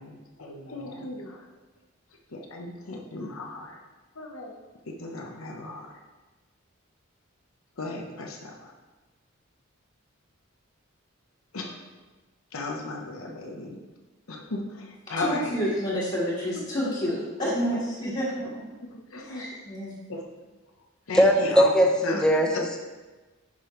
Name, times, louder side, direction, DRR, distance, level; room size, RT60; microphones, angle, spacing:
voice 1, 0.0-1.4 2.3-3.8 4.2-4.5 5.0-5.9 7.8-8.5 11.5-11.7 12.5-13.8 14.3-15.5 19.1-19.4 20.1-20.2 21.1-21.7 22.0-22.3, left 2 dB, 85° left, 1 dB, 0.9 m, -35 dB
voice 2, 15.1-18.6 19.2-19.9, equal, 35° left, -10 dB, 1.7 m, -29 dB
voice 3, 21.1-22.8, equal, 5° left, 1 dB, 0.8 m, -20 dB
10.5 x 5.1 x 3.1 m, 1.2 s
head